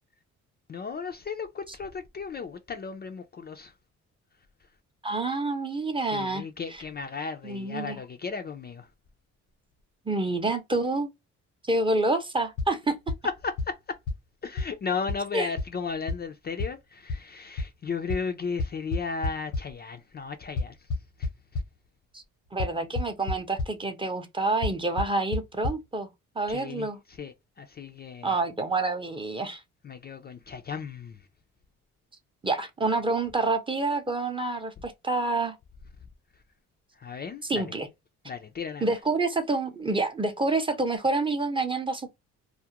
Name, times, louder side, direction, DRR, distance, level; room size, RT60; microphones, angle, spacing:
voice 1, 0.7-3.7 4.6-4.7 6.0-8.9 13.2-14.0 14.4-20.9 21.2-21.6 26.5-28.4 29.8-31.3 36.3-36.4 36.9-37.7 38.2-38.9, left 5 dB, 35° left, 0.4 m, -35 dB
voice 2, 5.0-6.4 7.4-8.0 10.1-11.1 11.6-13.0 15.3-15.5 22.1-22.2 22.5-26.1 26.4-27.0 28.2-29.6 32.4-35.6 37.5-37.9 38.8-42.1, right 2 dB, 15° right, 0.6 m, -27 dB
sound 1, 12.6-12.7 13.1-13.2 13.6-13.7 14.1-14.2 14.6-14.7 15.1-15.2 15.6-15.7 16.1-16.2 16.6-16.7 17.1-17.2 17.6-17.7 18.1-18.2 18.6-19.6 20.6-21.7 22.6-22.7 23.0-23.3 23.6-23.7 24.6-24.7 25.0-25.1 25.3-25.4 25.6-25.7, left 3 dB, 85° left, 0.9 m, -27 dB
2.3 x 2.1 x 2.8 m
cardioid pair, 90°, 30 cm